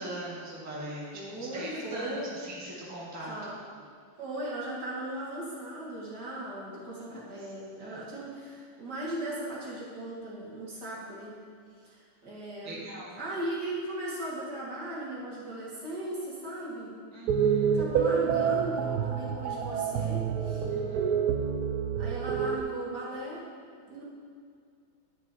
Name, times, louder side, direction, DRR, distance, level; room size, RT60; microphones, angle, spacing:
voice 1, 0.0-3.4 3.7-3.8 6.7-7.1 7.8-8.0 12.6-13.2 17.1-17.8 20.7-21.2, right 1 dB, 10° right, -6 dB, 1.3 m, -41 dB
voice 2, 1.1-2.4 3.3-3.6 4.2-11.4 11.8-12.8 13.2-17.0 17.6-20.7 22.0-23.5 23.9-24.0, right 1 dB, 60° right, -6 dB, 2.4 m, -37 dB
sound 1, 17.3-22.6, right 7 dB, 75° right, 0.9 m, -28 dB
10.5 x 8.5 x 2.7 m, 2.2 s
omnidirectional pair, 2.1 m